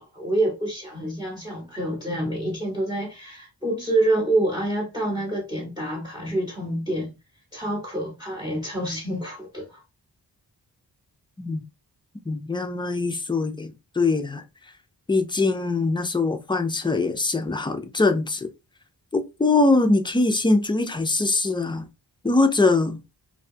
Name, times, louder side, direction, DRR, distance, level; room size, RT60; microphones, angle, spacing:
voice 1, 0.0-7.1 7.5-9.8, right 1 dB, 10° right, 0.8 m, -27 dB
voice 2, 12.3-14.4 15.1-18.5 19.1-21.9 22.2-23.0, left 3 dB, 15° left, 0.3 m, -22 dB
2.6 x 2.2 x 2.5 m
wide cardioid pair, 80°, 41 cm